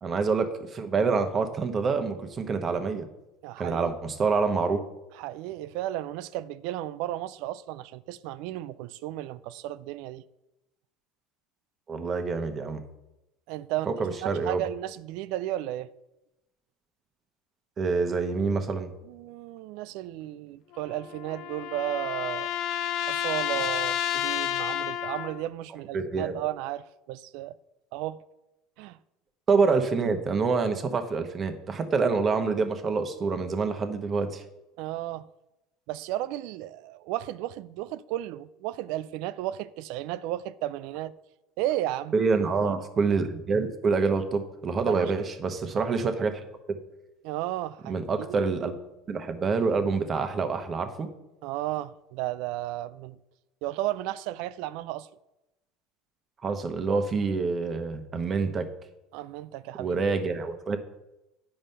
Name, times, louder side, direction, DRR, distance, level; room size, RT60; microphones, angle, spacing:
voice 1, 0.0-3.1 3.6-4.8 11.9-12.8 13.9-14.6 17.8-18.9 25.9-26.4 29.5-34.4 42.1-46.4 47.9-48.7 49.1-51.1 56.4-58.7 59.8-60.8, right 4 dB, 35° right, 1.1 m, -26 dB
voice 2, 3.4-3.9 5.1-10.2 13.5-13.9 14.2-15.9 19.0-22.5 23.1-27.6 27.9-28.2 28.8-29.0 34.8-35.3 35.9-41.1 41.6-42.2 44.9-45.1 47.2-48.5 51.4-53.2 53.6-55.1 59.1-60.0, right 14 dB, 70° right, 0.4 m, -34 dB
sound 1, 20.7-25.5, left 11 dB, 60° left, 0.6 m, -30 dB
9.2 x 5.1 x 5.5 m
supercardioid pair, 100°, 0 cm